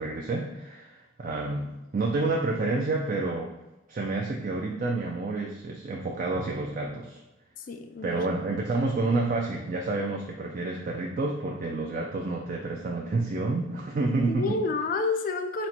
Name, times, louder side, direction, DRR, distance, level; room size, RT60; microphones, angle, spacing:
voice 1, 0.0-3.5 3.9-7.2 8.0-14.6, right 3 dB, 40° right, 0 dB, 0.4 m, -29 dB
voice 2, 7.7-8.4 14.3-15.7, left 3 dB, 45° left, 6 dB, 0.3 m, -29 dB
4.1 x 2.2 x 4.2 m, 0.99 s
head